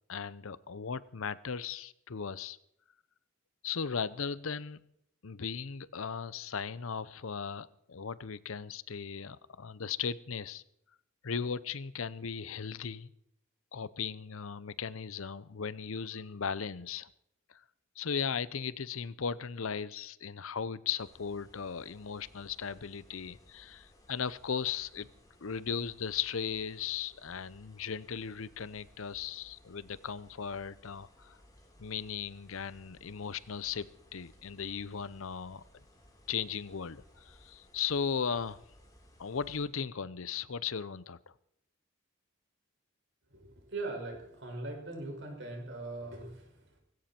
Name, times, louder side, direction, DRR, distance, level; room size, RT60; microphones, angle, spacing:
voice 1, 0.1-2.6 3.6-4.8 5.2-10.6 11.2-13.1 13.7-17.1 17.5-17.6 18.0-25.1 25.4-31.4 31.8-35.6 36.3-38.6 39.2-41.3, left 6 dB, 70° left, 18 dB, 0.7 m, -37 dB
sound 1, 21.0-39.7, left 1 dB, 15° left, 3.2 m, -61 dB
voice 2, 43.3-46.8, right 2 dB, 55° right, 2 dB, 5.7 m, -41 dB
19.5 x 16.5 x 4.4 m, 0.74 s
head